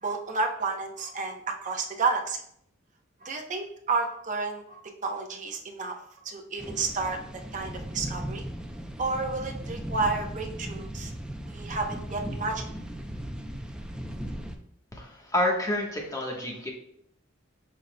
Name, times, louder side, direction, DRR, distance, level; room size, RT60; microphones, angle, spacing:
voice 1, 0.0-2.4 3.2-5.9 6.2-7.2 7.5-8.5 9.0-11.1 11.5-12.7, right 4 dB, 40° right, 2 dB, 0.8 m, -31 dB
sound 1, 6.6-14.6, equal, 5° right, 0.5 m, -37 dB
voice 2, 14.9-16.7, left 1 dB, 15° left, 0 dB, 1.1 m, -28 dB
12.0 x 4.0 x 2.2 m, 0.68 s
head